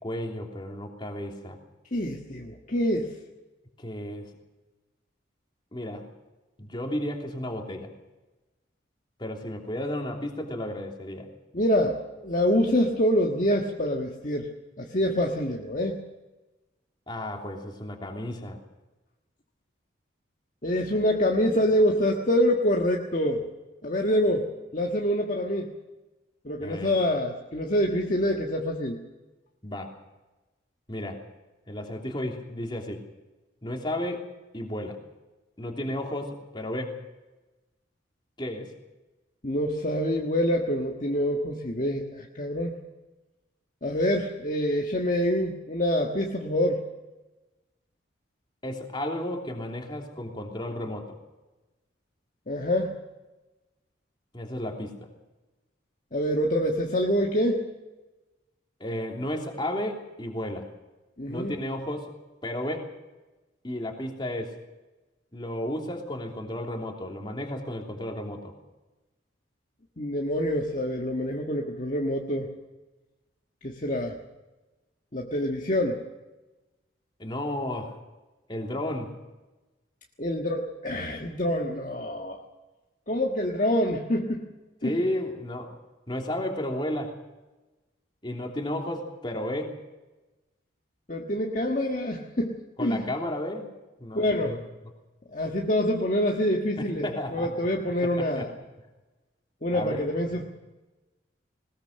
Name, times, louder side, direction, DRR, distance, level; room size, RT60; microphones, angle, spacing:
voice 1, 0.0-1.6 3.8-4.3 5.7-6.1 6.6-7.9 9.2-11.3 17.1-18.6 26.6-27.0 29.6-29.9 30.9-31.2 31.7-33.0 33.6-34.3 34.5-35.0 35.6-37.0 38.4-38.7 48.6-51.2 54.3-55.0 58.8-60.7 61.3-62.1 62.4-62.9 63.6-64.5 65.3-68.5 77.2-77.9 78.5-79.1 84.8-85.7 86.1-87.1 88.2-89.7 92.8-93.7 94.0-94.6 96.8-97.5 98.0-98.4 99.7-100.4, left 1 dB, 25° left, 1 dB, 3.1 m, -33 dB
voice 2, 1.9-3.1 11.5-12.0 12.2-14.5 14.8-16.0 20.6-23.5 23.8-24.5 24.7-25.7 26.4-29.0 39.4-42.8 43.8-46.8 52.5-52.9 56.1-57.6 61.2-61.5 70.0-72.5 73.6-74.1 75.1-76.0 80.2-82.4 83.1-84.5 84.8-85.0 91.1-93.0 94.1-94.6 95.3-98.5 99.6-100.4, equal, 40° left, 0 dB, 1.6 m, -26 dB
20.5 x 20.0 x 6.6 m, 1.1 s
head